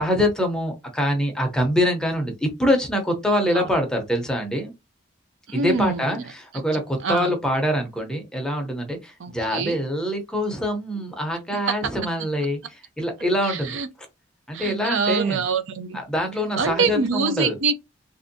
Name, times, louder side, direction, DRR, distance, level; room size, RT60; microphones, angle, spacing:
voice 1, 0.0-4.7 5.5-13.8 14.5-15.4 15.9-17.6, equal, 5° left, 0.6 m, -24 dB
voice 2, 5.5-6.2 7.0-7.3 9.2-9.8 11.7-11.8 13.5-13.9 14.5-16.0 16.6-17.8, right 4 dB, 85° right, 0.5 m, -25 dB
3.2 x 2.6 x 2.6 m
head